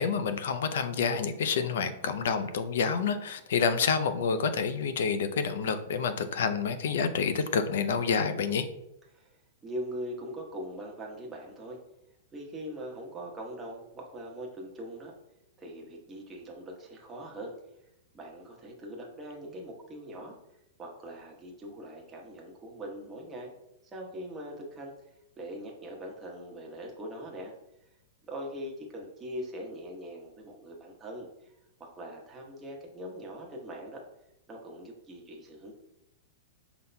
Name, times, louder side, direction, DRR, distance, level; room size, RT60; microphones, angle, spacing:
voice 1, 0.0-8.7, left 6 dB, 75° left, 10 dB, 0.5 m, -28 dB
voice 2, 9.1-11.8 12.3-15.1 15.6-17.6 18.1-20.3 20.8-23.5 23.9-24.9 25.4-27.5 28.3-31.5 31.8-34.0 34.5-35.7, equal, 15° right, -1 dB, 1.0 m, -41 dB
5.5 x 4.0 x 2.2 m, 0.86 s
hypercardioid pair, 135°, 0 cm